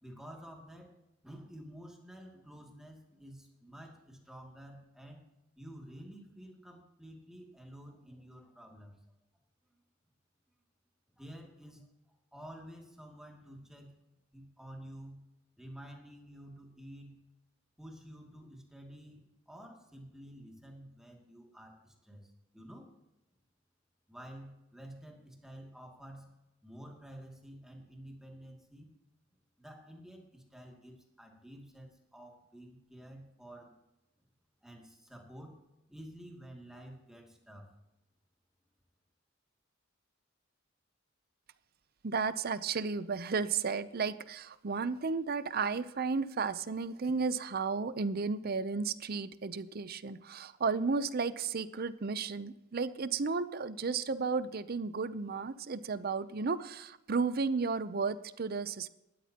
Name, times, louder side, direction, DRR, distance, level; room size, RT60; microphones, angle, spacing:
voice 1, 0.0-1.0 1.2-5.2 5.6-9.0 9.7-9.8 11.2-11.9 12.3-14.0 14.3-15.2 15.6-17.2 17.8-22.9 24.1-26.3 26.6-28.9 29.6-33.7 34.6-35.6 35.9-37.7, equal, 5° right, 0 dB, 2.4 m, -50 dB
voice 2, 42.0-58.9, right 4 dB, 50° right, 14 dB, 0.6 m, -33 dB
17.5 x 13.0 x 2.9 m, 0.91 s
head